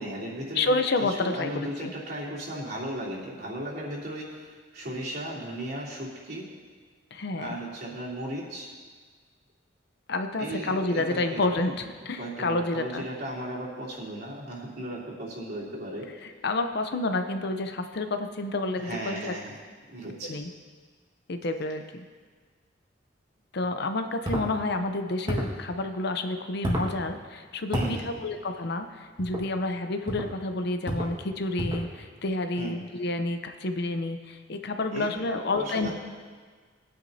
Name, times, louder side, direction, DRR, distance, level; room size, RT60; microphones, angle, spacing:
voice 1, 0.0-0.7 1.0-6.5 7.3-8.7 10.4-11.7 12.2-16.1 18.8-19.5 19.9-20.3 27.7-28.1 32.6-32.8 34.9-35.9, right 1 dB, 55° right, -6 dB, 3.2 m, -36 dB
voice 2, 0.5-1.9 7.1-7.5 10.1-13.1 16.4-19.3 20.3-20.5 21.3-22.0 23.5-35.9, left 2 dB, 60° left, 7 dB, 0.7 m, -29 dB
sound 1, 24.2-24.5 25.3-25.6 26.6-26.9 27.7-28.0 29.2-29.5 30.1-30.3 30.8-31.2 31.6-31.9, equal, 25° right, 1.7 m, -30 dB
20.5 x 9.6 x 2.8 m, 1.5 s
head